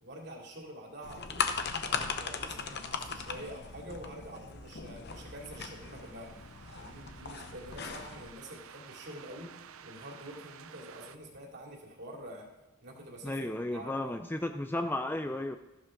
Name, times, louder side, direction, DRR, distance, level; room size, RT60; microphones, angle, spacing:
voice 1, 0.0-1.5 1.8-6.4 6.7-12.5 12.8-14.3, right 1 dB, 50° right, -1 dB, 2.9 m, -47 dB
sound 1, 1.0-8.3, left 5 dB, 50° left, 0.9 m, -38 dB
sound 2, 5.1-11.2, right 7 dB, 75° right, 0.6 m, -53 dB
voice 2, 13.2-15.6, left 1 dB, 10° left, 7 dB, 0.4 m, -34 dB
14.0 x 11.5 x 3.8 m, 1.1 s
head